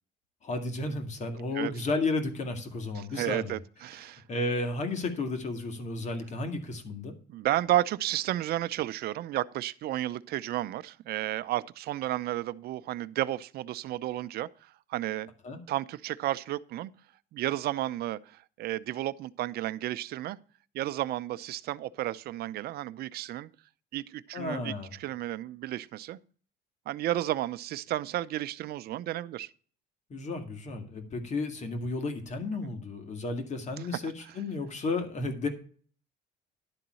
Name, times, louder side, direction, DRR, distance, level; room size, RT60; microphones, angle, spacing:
voice 1, 0.4-3.5 4.3-7.1 15.4-15.6 24.3-24.9 30.1-35.5, left 3 dB, 45° left, 2.1 m, -33 dB
voice 2, 2.9-4.2 7.3-15.3 15.7-16.9 17.3-20.4 20.7-23.5 23.9-26.2 26.9-29.5 34.2-34.4, right 14 dB, 70° right, 0.6 m, -32 dB
11.5 x 3.9 x 7.5 m
cardioid pair, 110°, 17 cm